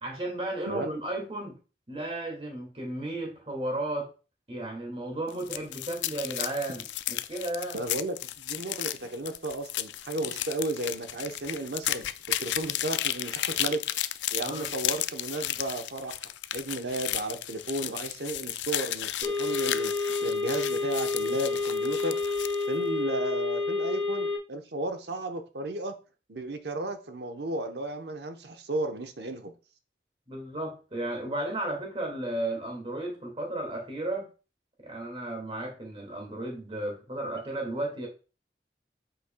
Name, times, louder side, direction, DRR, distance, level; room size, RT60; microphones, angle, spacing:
voice 1, 0.0-1.6 1.9-4.1 4.5-7.8 14.4-14.7 30.3-34.3 34.8-38.1, right 1 dB, 30° right, 1 dB, 2.1 m, -34 dB
sound 1, 5.3-22.7, left 13 dB, 85° left, 0.4 m, -34 dB
voice 2, 7.7-12.1 12.4-13.8 14.3-19.9 20.2-22.2 22.7-25.9 26.3-29.5, right 2 dB, 70° right, 6 dB, 1.0 m, -34 dB
sound 2, 19.2-24.4, left 3 dB, 55° right, 1.5 m, -29 dB
8.0 x 6.2 x 2.3 m, 0.33 s
head